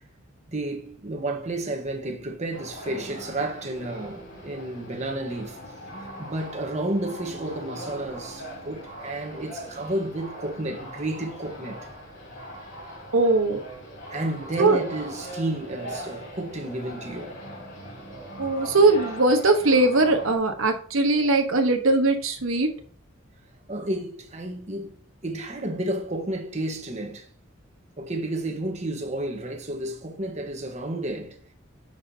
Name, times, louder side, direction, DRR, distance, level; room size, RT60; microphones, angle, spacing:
voice 1, 0.5-5.6 6.2-11.9 14.1-17.4 23.7-25.0 25.2-27.3 28.0-31.4, right 1 dB, 35° right, 1.3 m, -31 dB
sound 1, 2.5-20.4, equal, 60° left, 4.5 m, -41 dB
voice 2, 13.1-13.6 14.6-14.8 18.4-22.7, right 2 dB, 80° right, 1.2 m, -20 dB
10.5 x 6.1 x 2.8 m
head